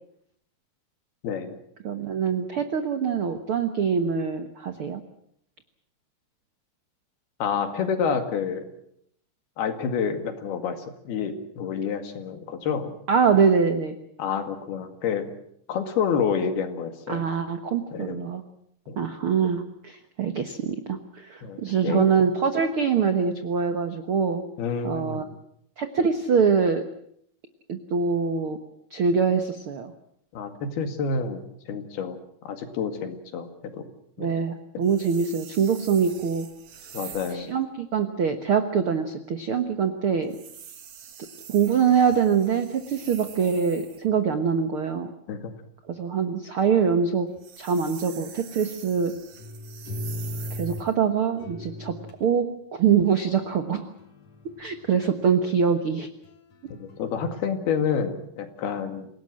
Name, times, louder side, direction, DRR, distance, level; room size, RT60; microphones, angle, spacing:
voice 1, 1.2-1.6 7.4-8.7 9.6-12.9 14.2-15.3 15.7-17.2 17.9-18.3 18.9-19.0 21.4-22.1 24.6-25.3 30.3-32.2 32.5-33.8 34.2-34.4 36.9-37.6 45.3-45.5 56.8-59.1, left 6 dB, 75° left, 7 dB, 4.0 m, -29 dB
voice 2, 1.8-5.0 13.1-13.9 17.1-18.4 19.0-24.4 24.8-25.2 25.8-26.9 27.7-28.6 28.9-29.9 34.2-36.5 37.3-40.3 41.5-45.1 45.9-47.3 47.6-49.1 50.6-53.8 54.6-56.1, right 6 dB, 80° right, 8 dB, 1.2 m, -24 dB
sound 1, 34.8-37.5 40.2-44.1 47.3-50.9, right 8 dB, 55° right, 3.0 m, -45 dB
sound 2, 49.4-50.9 51.4-52.3 53.4-55.1 56.2-57.3, left 1 dB, 40° left, 4.0 m, -38 dB
27.5 x 18.0 x 7.6 m, 0.70 s
omnidirectional pair, 4.6 m